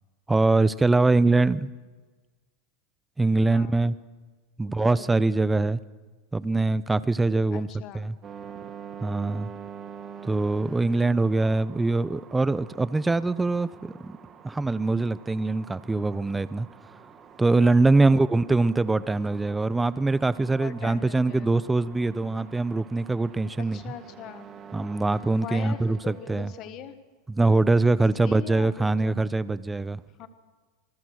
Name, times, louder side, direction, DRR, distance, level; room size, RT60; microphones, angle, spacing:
voice 1, 0.3-1.7 3.2-3.9 4.6-5.8 6.3-7.7 7.9-8.1 9.0-9.5 10.2-13.7 14.0-14.2 14.4-16.7 17.4-23.8 24.7-26.5 27.3-30.0, right 3 dB, 10° right, 17 dB, 0.7 m, -23 dB
voice 2, 4.6-5.2 7.5-8.1 18.0-18.2 20.4-21.6 23.6-24.5 25.3-27.0 28.2-29.3 30.2-30.3, left 10 dB, 45° left, 11 dB, 1.4 m, -41 dB
sound 1, 8.2-26.7, right 7 dB, 25° right, 1.8 m, -47 dB
27.0 x 20.5 x 6.4 m, 1.4 s
supercardioid pair, 140°, 0 cm